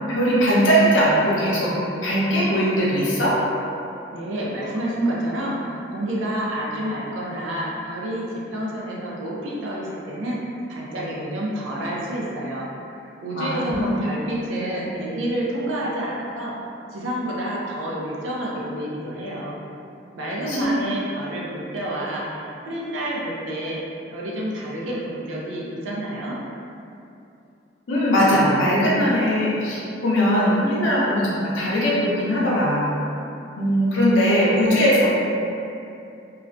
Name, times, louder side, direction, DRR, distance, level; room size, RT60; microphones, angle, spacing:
voice 1, 0.1-1.7 2.0-3.4 13.4-13.9 20.2-20.8 27.9-32.9 33.6-35.1, equal, 85° left, -7 dB, 0.6 m, -20 dB
voice 2, 4.1-12.7 13.0-16.5 16.9-19.6 20.2-23.8 24.1-26.4, right 1 dB, 90° right, -5 dB, 0.5 m, -28 dB
2.3 x 2.1 x 2.5 m, 2.7 s
head